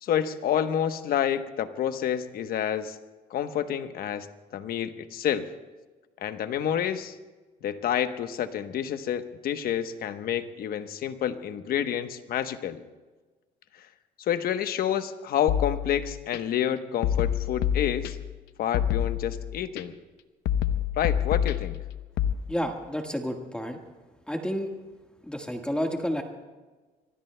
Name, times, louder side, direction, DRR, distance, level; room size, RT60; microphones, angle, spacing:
voice 1, 0.0-3.0 3.3-4.3 4.5-5.5 6.2-7.2 7.6-12.8 13.8-13.9 14.2-18.2 18.6-19.9 21.0-21.8, left 9 dB, 60° left, 9 dB, 1.0 m, -29 dB
sound 1, 15.5-16.4 17.0-18.4 18.7-19.8 20.5-22.3, left 10 dB, 85° left, 0.8 m, -27 dB
voice 2, 22.5-23.8 24.3-24.7 25.3-26.2, equal, 5° left, 3 dB, 1.5 m, -30 dB
25.5 x 24.0 x 2.2 m, 1.3 s
cardioid pair, 110°, 17 cm